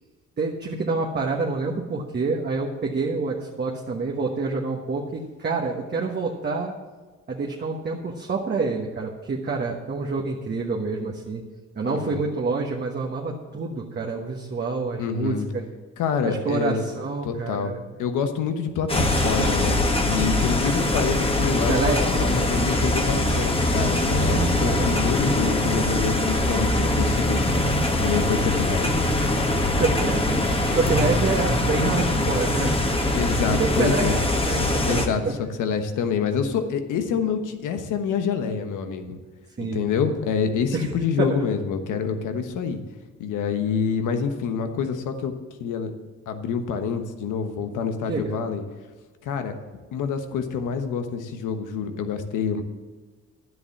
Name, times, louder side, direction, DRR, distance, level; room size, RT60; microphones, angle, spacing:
voice 1, 0.4-6.7 7.3-11.4 11.7-15.6 16.2-17.8 21.7-22.5 24.1-24.9 25.4-25.6 29.8-32.9 33.5-35.4 39.6-39.9 40.7-40.9 41.2-41.5 48.0-48.4, right 4 dB, 35° right, -1 dB, 1.3 m, -27 dB
voice 2, 11.8-12.2 15.0-15.5 16.0-16.8 17.2-17.7 18.0-19.8 20.1-27.6 28.0-29.0 33.1-34.2 34.9-39.2 39.6-42.8 43.2-45.3 45.6-45.9 46.3-48.6 49.2-49.5 49.9-52.6, left 6 dB, 85° left, 7 dB, 1.2 m, -27 dB
sound 1, 18.9-35.1, left 1 dB, 20° left, 1.4 m, -22 dB
10.5 x 8.0 x 7.2 m, 1.3 s
cardioid pair, 90°, 30 cm